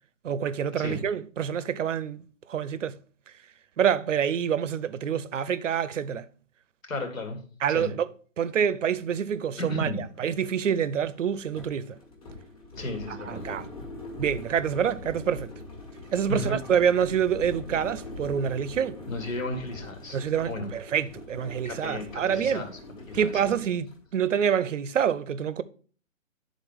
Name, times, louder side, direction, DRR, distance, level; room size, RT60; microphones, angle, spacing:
voice 1, 0.2-3.0 3.8-6.3 7.6-8.1 8.4-12.0 13.1-13.7 14.2-15.5 16.1-19.0 20.1-22.7 23.1-25.6, right 8 dB, 65° right, 0.6 m, -27 dB
voice 2, 6.9-7.4 7.7-7.9 9.6-10.0 12.8-13.4 16.3-16.6 19.1-20.2 20.5-20.7 21.6-22.7 23.1-23.5, left 1 dB, 80° left, 2.2 m, -33 dB
sound 1, 8.9-9.0 9.3-24.1, left 2 dB, 25° left, 1.4 m, -43 dB
10.0 x 3.8 x 3.5 m
hypercardioid pair, 165°, 40 cm